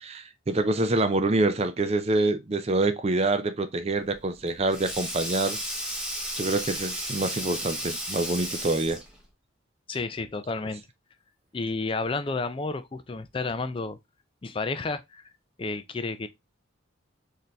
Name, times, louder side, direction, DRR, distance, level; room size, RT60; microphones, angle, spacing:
voice 1, 0.0-5.6 6.4-9.0, right 2 dB, 30° right, 0.5 m, -26 dB
Sink (filling or washing), 4.0-9.2, equal, 5° right, 0.8 m, -34 dB
voice 2, 9.9-10.8 11.5-14.0 14.4-15.2 15.6-16.3, left 3 dB, 25° left, 0.4 m, -31 dB
4.2 x 2.7 x 3.1 m
head